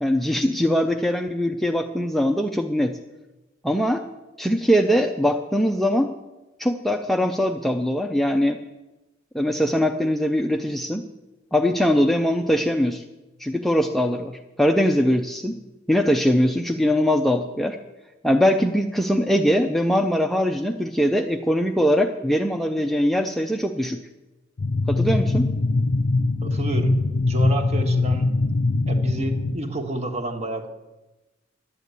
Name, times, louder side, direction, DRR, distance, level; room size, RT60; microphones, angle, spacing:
voice 1, 0.0-3.0 3.6-4.0 4.4-6.2 6.6-8.6 9.3-11.0 11.5-13.0 13.4-15.6 15.9-17.8 18.2-24.0 24.9-25.5, equal, ahead, 4 dB, 0.5 m, -21 dB
sound 1, 24.6-29.6, left 3 dB, 55° left, 0.5 m, -22 dB
voice 2, 26.4-27.0 27.3-28.3 28.8-30.7, right 2 dB, 35° right, 5 dB, 1.4 m, -29 dB
11.0 x 8.9 x 8.2 m, 1.1 s
head